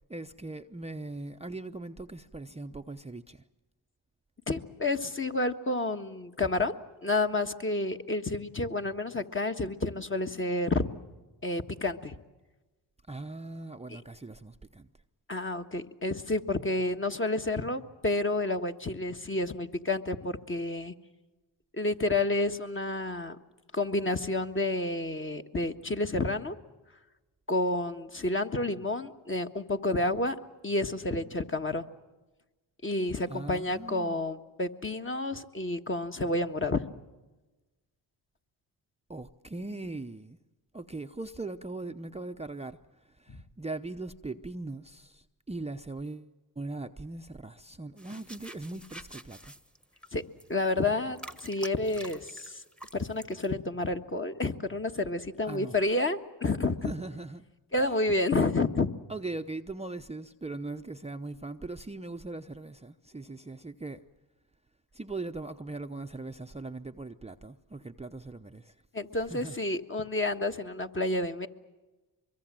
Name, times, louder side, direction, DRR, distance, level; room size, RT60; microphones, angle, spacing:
voice 1, 0.1-3.4 13.1-14.9 33.3-34.2 39.1-40.4 40.7-49.5 55.4-55.9 56.8-57.4 57.8-58.0 59.1-64.0 64.9-68.8 69.2-69.6, right 2 dB, 15° right, 0.8 m, -40 dB
voice 2, 4.5-6.7 7.0-10.8 11.4-12.1 13.9-14.0 15.3-20.9 21.7-23.4 23.7-26.6 27.5-30.4 30.6-31.8 32.8-36.8 43.3-43.4 50.1-50.2 50.5-52.6 52.9-56.9 57.7-58.9 68.9-71.5, left 2 dB, 25° left, 1.5 m, -30 dB
sound 1, 48.0-53.5, right 1 dB, ahead, 1.3 m, -48 dB
24.0 x 23.0 x 7.6 m
supercardioid pair, 55°, 46 cm